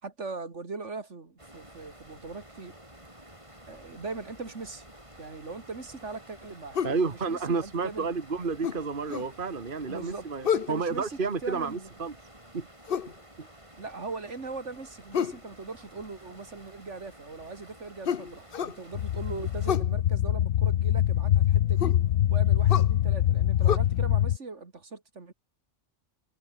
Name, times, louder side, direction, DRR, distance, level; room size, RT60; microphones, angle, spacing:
voice 1, 0.0-2.7 3.7-4.8 5.2-8.1 9.9-10.3 10.5-11.9 13.8-22.0 22.3-25.3, right 3 dB, 70° right, 2.9 m, -40 dB
sound 1, 1.4-19.7, right 1 dB, 25° right, 6.9 m, -52 dB
sound 2, 6.7-7.0 8.6-9.3 10.4-10.8 12.9-13.1 15.1-15.4 18.0-18.8 19.6-19.9 21.8-22.0 22.7-22.9 23.7-23.8, left 8 dB, 50° left, 1.0 m, -29 dB
voice 2, 6.8-12.1 12.5-12.7 13.4-13.5, right 4 dB, 45° right, 1.9 m, -31 dB
sound 3, 18.9-24.4, left 12 dB, 75° left, 1.0 m, -24 dB
omnidirectional pair, 1.3 m